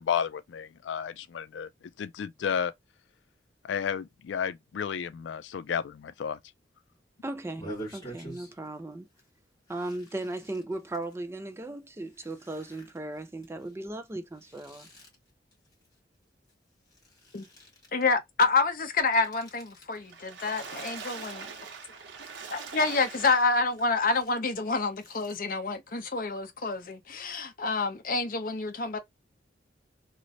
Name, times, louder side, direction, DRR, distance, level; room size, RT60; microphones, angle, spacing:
voice 1, 0.0-1.7 2.0-2.7 3.7-6.4, left 7 dB, 85° left, 0.3 m, -32 dB
voice 2, 7.2-9.1 9.7-14.9, right 2 dB, 15° right, 0.3 m, -37 dB
sound 1, 7.5-8.8 9.1-9.3 9.7-11.2 11.8-16.5 16.8-18.1 18.9-20.1 20.5-21.7 22.1-22.8 23.1-25.4, right 1 dB, 20° left, 1.5 m, -48 dB
voice 3, 17.9-21.5 22.5-29.0, left 3 dB, 50° left, 0.7 m, -28 dB
Water / Splash splatter, 20.0-23.8 24.4-24.5 24.8-24.9, right 5 dB, 85° right, 0.8 m, -42 dB
3.1 x 2.0 x 3.8 m
head